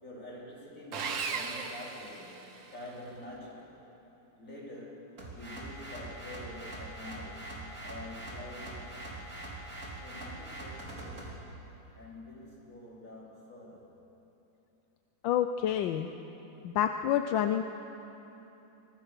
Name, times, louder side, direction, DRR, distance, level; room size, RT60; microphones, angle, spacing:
voice 1, 0.0-2.4 2.7-3.8 4.4-9.1 10.0-11.4 11.9-13.9, left 1 dB, 40° left, -5 dB, 4.7 m, -47 dB
Sawing, 0.9-2.8, right 5 dB, 80° right, 2.0 m, -37 dB
sound 1, 5.2-11.4, right 1 dB, 40° right, 3.7 m, -43 dB
voice 2, 15.2-16.1 16.6-17.6, left 10 dB, 85° left, 8 dB, 1.4 m, -28 dB
24.0 x 18.5 x 6.6 m, 3.0 s
omnidirectional pair, 2.0 m